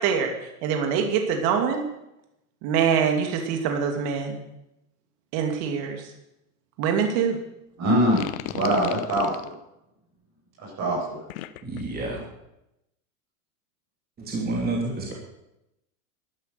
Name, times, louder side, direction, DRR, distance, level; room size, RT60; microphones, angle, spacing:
voice 1, 0.0-1.8 2.6-4.4 5.3-6.0 6.8-7.4, right 7 dB, 55° right, 4 dB, 2.7 m, -24 dB
voice 2, 7.8-9.5 10.6-11.2, equal, 35° right, -1 dB, 7.2 m, -24 dB
sound 1, 8.0-9.5 11.3-11.8, left 14 dB, 65° left, 1.1 m, -34 dB
voice 3, 11.6-12.2 14.2-15.1, right 2 dB, 20° right, -1 dB, 3.0 m, -29 dB
12.0 x 12.0 x 6.9 m, 0.86 s
supercardioid pair, 130°, 45 cm